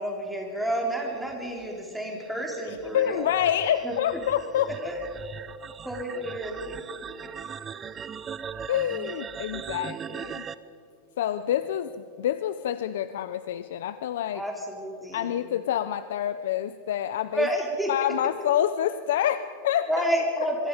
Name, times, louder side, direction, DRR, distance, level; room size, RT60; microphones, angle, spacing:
voice 1, 0.0-3.3 3.8-3.9 4.8-5.0 5.8-6.8 7.2-7.3 14.3-15.3 17.3-17.9 19.9-20.7, right 1 dB, ahead, -1 dB, 3.1 m, -30 dB
sound 1, 1.3-10.5, right 7 dB, 15° right, 0.6 m, -40 dB
voice 2, 2.6-4.7 8.7-10.5 11.2-14.4 15.1-17.5 17.9-20.1, left 10 dB, 80° left, 12 dB, 0.7 m, -27 dB
25.5 x 23.5 x 5.2 m, 2.4 s
supercardioid pair, 170°, 0 cm